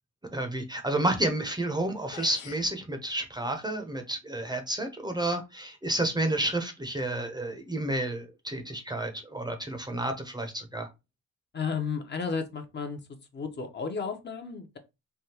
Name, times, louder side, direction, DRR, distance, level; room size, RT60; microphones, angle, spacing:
voice 1, 0.3-10.9, right 1 dB, 15° right, 0.6 m, -30 dB
sound 1, 1.8-1.9 2.1-2.7, left 8 dB, 90° left, 0.6 m, -45 dB
voice 2, 11.5-13.0 13.3-14.8, left 5 dB, 35° left, 0.7 m, -33 dB
3.4 x 2.2 x 2.8 m
cardioid pair, 90°, 30 cm